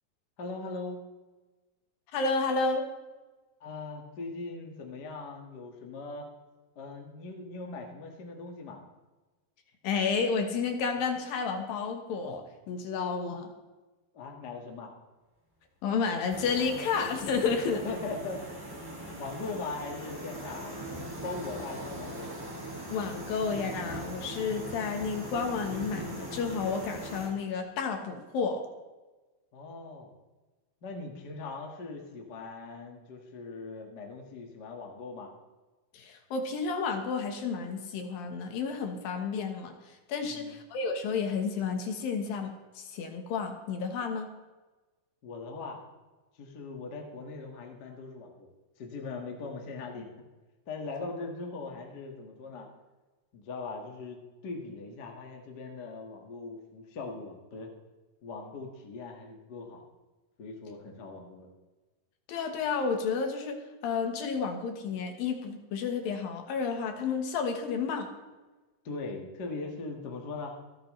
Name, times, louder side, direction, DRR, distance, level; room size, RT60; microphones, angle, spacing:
voice 1, 0.4-1.0 3.6-6.3 6.7-8.8 14.1-14.9 17.7-18.4 19.1-22.4 29.5-30.1 30.8-35.3 40.3-40.6 45.2-45.8 46.4-48.5 48.8-50.1 50.6-52.7 53.3-57.7 58.2-59.8 60.4-61.5 68.8-70.5, left 3 dB, 50° left, 1 dB, 1.2 m, -40 dB
voice 2, 2.1-2.9 9.8-13.5 15.8-17.8 22.9-28.6 35.9-44.3 62.3-63.6 63.8-68.1, left 5 dB, 70° left, 5 dB, 2.8 m, -31 dB
sound 1, 16.3-27.3, right 1 dB, 5° right, 1.8 m, -40 dB
26.0 x 8.9 x 3.2 m, 1.2 s
omnidirectional pair, 4.7 m